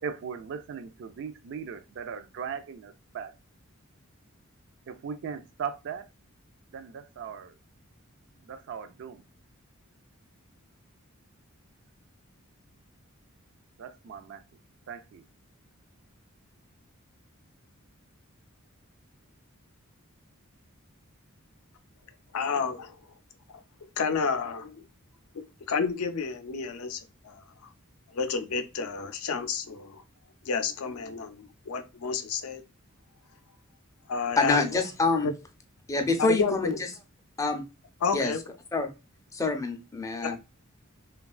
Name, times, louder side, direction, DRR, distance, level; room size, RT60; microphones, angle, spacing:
voice 1, 0.0-3.3 4.9-6.1 6.7-7.5 8.4-9.2 13.8-14.4 14.9-15.2, right 6 dB, 60° right, 0.3 m, -38 dB
voice 2, 22.3-22.9 24.0-24.8 25.3-27.4 28.1-30.0 30.5-32.6 34.1-34.9 35.1-35.3 36.2-36.8 38.0-38.4 40.2-40.4, left 5 dB, 90° left, 0.5 m, -30 dB
voice 3, 34.4-35.3 35.9-37.0 37.4-37.6 38.1-38.4 38.7-38.9 39.3-40.4, left 3 dB, 15° left, 0.4 m, -26 dB
3.0 x 2.3 x 2.3 m
head